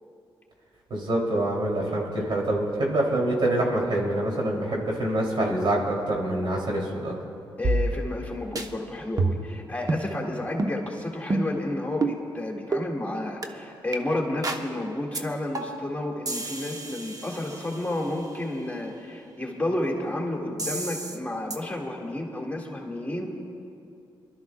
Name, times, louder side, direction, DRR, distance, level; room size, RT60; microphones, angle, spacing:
voice 1, 0.9-7.1, right 1 dB, 65° right, -2 dB, 3.0 m, -25 dB
voice 2, 7.6-23.3, left 1 dB, 15° left, -1 dB, 2.1 m, -31 dB
sound 1, 7.6-8.3 8.6-8.7 9.2-9.5 9.9-10.1 10.6-10.8 11.3-11.6 12.0-12.2 12.7-12.9 13.4-13.5 13.9-14.0 14.4-14.7 15.1-15.2 15.5-15.9 16.3-18.1 20.6-21.2 21.5-21.6, right 2 dB, 45° right, 0.9 m, -29 dB
28.0 x 12.5 x 2.3 m, 2.6 s
cardioid pair, 70°, 9 cm